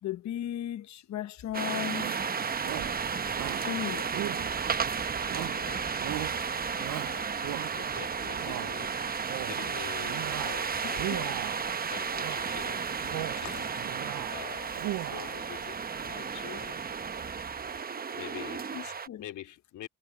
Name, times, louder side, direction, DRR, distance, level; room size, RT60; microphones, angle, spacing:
voice 1, 0.0-2.1 3.6-4.2 11.1-11.2 13.4-13.7 18.7-19.2, left 11 dB, 65° left, 1.1 m, -36 dB
sound 1, 1.5-19.1, right 6 dB, 30° right, 0.9 m, -33 dB
Shout, 1.9-2.3 2.6-3.0 3.3-3.7 4.1-4.8 5.3-5.7 6.0-6.4 6.8-7.9 8.3-8.7 9.1-9.6 10.0-10.6 10.9-11.6 12.1-12.5 12.9-13.5 13.8-14.3 14.6-15.4, right 16 dB, 80° right, 0.5 m, -38 dB
voice 2, 5.2-5.9 6.3-11.4 11.9-13.7 14.3-14.8 15.1-16.8 17.6-19.9, left 12 dB, 80° left, 3.2 m, -46 dB
cardioid pair, 90°, 30 cm